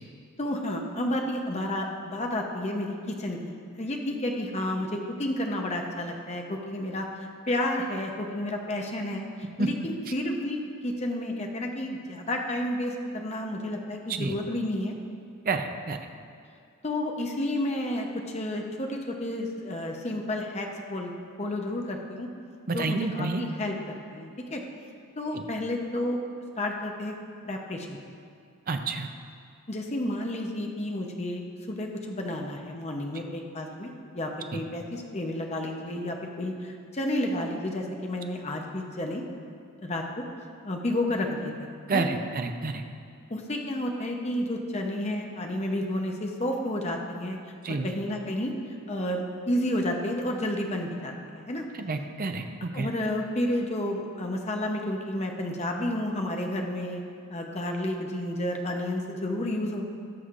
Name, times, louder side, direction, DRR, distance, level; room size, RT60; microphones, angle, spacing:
voice 1, 0.4-7.1 7.5-9.3 9.6-14.9 16.8-21.1 21.4-22.3 22.7-24.6 25.2-26.2 26.6-27.2 27.4-28.0 29.7-31.4 31.7-39.2 39.8-40.2 40.6-42.0 43.3-47.4 47.7-48.5 48.9-51.6 52.7-57.0 57.3-59.8, left 1 dB, 30° left, 2 dB, 0.8 m, -31 dB
voice 2, 15.4-16.0 22.7-23.4 25.3-25.4 28.7-29.1 34.5-34.6 41.9-42.8 47.6-47.9 51.8-52.9, right 3 dB, 40° right, 6 dB, 0.6 m, -29 dB
17.5 x 6.4 x 2.5 m, 2.4 s
head